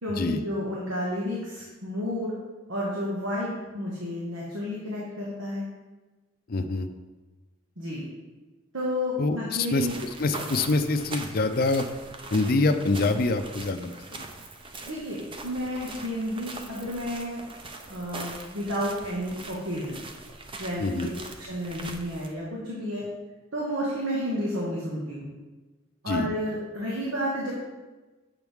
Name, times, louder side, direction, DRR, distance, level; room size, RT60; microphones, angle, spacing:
voice 1, 0.0-2.3 2.7-5.6 7.8-8.0 8.7-9.9 14.8-17.4 17.9-20.0 20.6-21.1 21.5-23.0 23.5-25.2 26.0-27.5, equal, 90° right, -5 dB, 1.5 m, -31 dB
voice 2, 6.5-6.9 9.2-11.8 12.3-14.3 20.8-21.1 26.1-26.3, left 3 dB, 50° left, 7 dB, 0.5 m, -25 dB
sound 1, 9.8-22.3, right 3 dB, 25° right, 0.6 m, -42 dB
8.0 x 6.2 x 3.5 m, 1.2 s
head